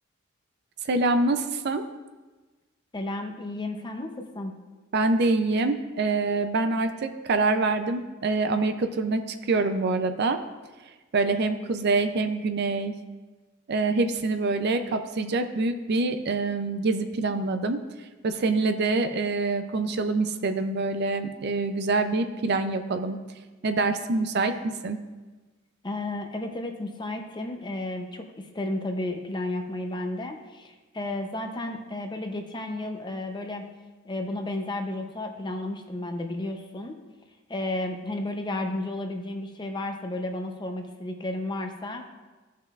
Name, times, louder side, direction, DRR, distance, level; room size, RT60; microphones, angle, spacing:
voice 1, 0.8-1.9 4.9-10.4 11.1-13.0 13.7-17.8 18.2-23.2 23.6-25.0, right 3 dB, 55° right, 8 dB, 0.5 m, -25 dB
voice 2, 2.9-4.5 25.8-33.7 34.0-37.0 37.5-42.1, left 2 dB, 20° left, 4 dB, 0.7 m, -32 dB
15.5 x 5.6 x 2.4 m, 1.2 s
head